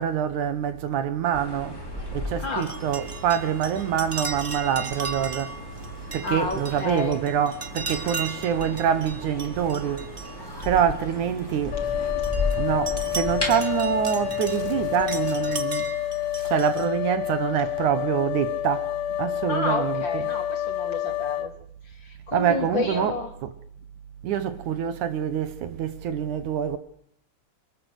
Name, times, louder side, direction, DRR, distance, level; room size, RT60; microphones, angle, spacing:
voice 1, 0.0-1.8 2.1-5.5 6.1-10.1 10.6-11.8 12.5-15.9 16.5-18.9 19.2-20.3 22.3-23.1 24.2-26.8, right 9 dB, 70° right, 2.6 m, -25 dB
sound 1, 1.3-15.6, left 2 dB, 5° left, 5.0 m, -36 dB
voice 2, 2.4-2.7 6.2-7.2 16.4-16.5 19.5-21.6 21.8-23.3, left 3 dB, 35° left, 3.2 m, -30 dB
sound 2, 2.6-11.4 11.9-16.9, right 4 dB, 40° right, 0.7 m, -37 dB
sound 3, 11.7-21.5, left 13 dB, 75° left, 2.5 m, -28 dB
24.5 x 18.0 x 8.2 m
omnidirectional pair, 3.7 m